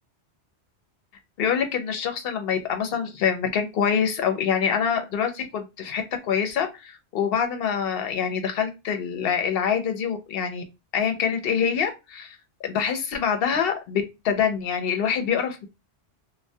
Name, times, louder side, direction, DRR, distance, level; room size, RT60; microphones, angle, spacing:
voice 1, 1.4-10.6 10.9-12.4 12.6-15.7, left 7 dB, 65° left, 5 dB, 0.8 m, -25 dB
2.2 x 2.2 x 2.6 m, 0.25 s
omnidirectional pair, 1.1 m